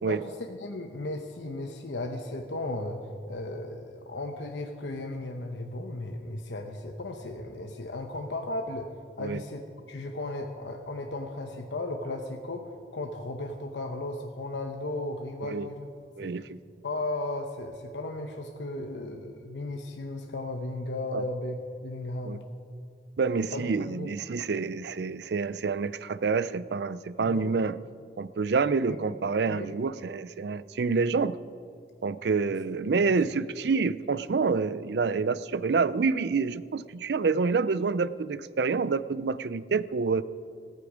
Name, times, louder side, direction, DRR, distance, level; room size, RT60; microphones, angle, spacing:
voice 1, 0.1-9.6 9.9-15.9 16.2-16.4 16.8-22.4 23.5-24.1 27.2-27.6 28.9-29.2 29.5-29.8 33.0-33.2, left 2 dB, 80° left, 3 dB, 0.9 m, -35 dB
voice 2, 16.2-16.6 21.1-21.2 22.3-22.4 23.2-27.8 28.2-31.4 32.0-40.2, right 4 dB, 65° right, 17 dB, 0.4 m, -27 dB
15.0 x 13.5 x 5.0 m, 2.3 s
head